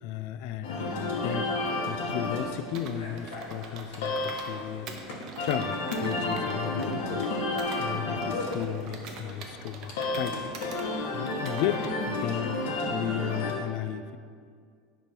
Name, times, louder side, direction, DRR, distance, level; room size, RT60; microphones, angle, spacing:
voice 1, 0.0-1.5 1.8-4.9 5.4-7.3 7.8-10.5 11.1-12.6 12.9-14.2, left 10 dB, 60° left, 12 dB, 0.3 m, -34 dB
sound 1, 0.6-13.5, left 2 dB, 80° left, 1.3 m, -32 dB
Computer keyboard, 2.7-4.6 4.9-7.8 8.2-10.9 11.3-11.9, right 5 dB, 40° right, 0.7 m, -44 dB
10.0 x 3.5 x 4.4 m, 2.1 s
cardioid pair, 170°, 0 cm